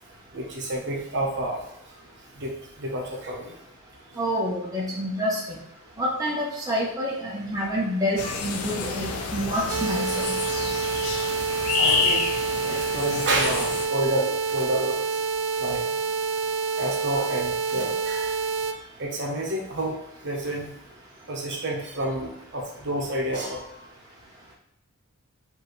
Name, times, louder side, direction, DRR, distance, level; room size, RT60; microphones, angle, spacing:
voice 1, 0.3-1.6 2.3-3.5 11.8-12.3 12.6-15.0 15.6-15.8 16.8-18.4 19.0-20.0 20.2-20.7 21.3-23.7, right 1 dB, 50° right, -1 dB, 0.9 m, -29 dB
voice 2, 4.2-5.4 6.0-10.3, equal, 15° right, -4 dB, 0.6 m, -27 dB
sound 1, 8.2-13.9, left 4 dB, 85° left, 0.6 m, -28 dB
sound 2, 9.7-18.7, right 5 dB, 85° right, 0.4 m, -27 dB
4.8 x 2.8 x 3.1 m, 0.84 s
head